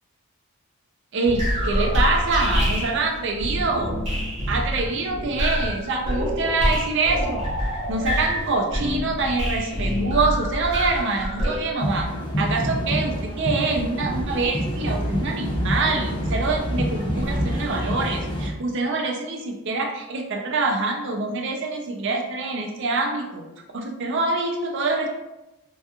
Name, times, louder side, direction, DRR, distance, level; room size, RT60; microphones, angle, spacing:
voice 1, 1.1-4.0 4.5-7.6 7.9-12.1 12.4-25.1, right 3 dB, 55° right, 1 dB, 0.4 m, -25 dB
sound 1, 1.2-11.6, equal, 25° right, 0.9 m, -26 dB
sound 2, 11.8-18.5, equal, 20° left, 0.3 m, -27 dB
2.8 x 2.3 x 2.3 m, 1.0 s
head